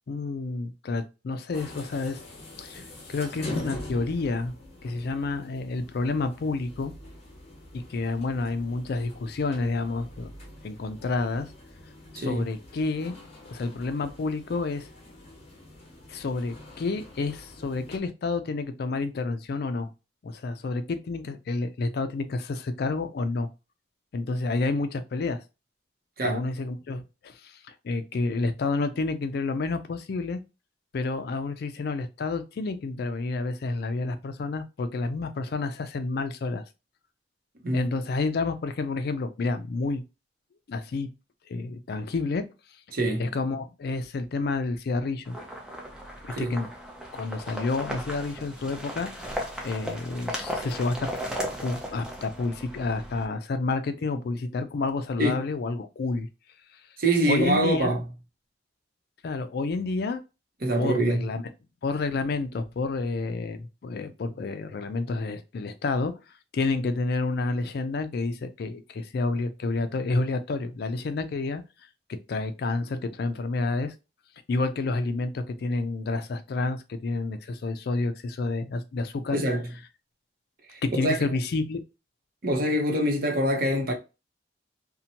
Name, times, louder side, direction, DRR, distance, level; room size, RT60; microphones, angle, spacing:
voice 1, 0.1-2.2 2.6-4.5 4.8-6.9 7.7-10.3 10.6-11.5 12.1-13.1 13.5-14.9 16.1-19.9 20.2-23.5 24.1-25.4 26.2-30.4 30.9-36.6 37.7-40.0 40.7-41.1 41.5-42.4 43.2-45.4 46.2-46.7 47.1-49.4 49.6-51.1 51.6-56.3 57.3-58.0 59.2-60.2 60.8-61.4 61.8-66.1 66.5-71.6 72.3-73.9 74.5-79.4 80.8-81.8, left 3 dB, 60° left, 0.4 m, -29 dB
sound 1, 1.5-18.0, left 1 dB, 35° left, 1.0 m, -44 dB
voice 2, 42.9-43.3 46.3-46.5 55.2-55.4 57.0-58.0 60.6-61.3 79.3-79.7 80.7-81.3 82.4-83.9, right 1 dB, 55° right, 0.7 m, -25 dB
sound 2, 45.2-53.2, equal, 5° right, 0.5 m, -36 dB
2.7 x 2.1 x 2.8 m
head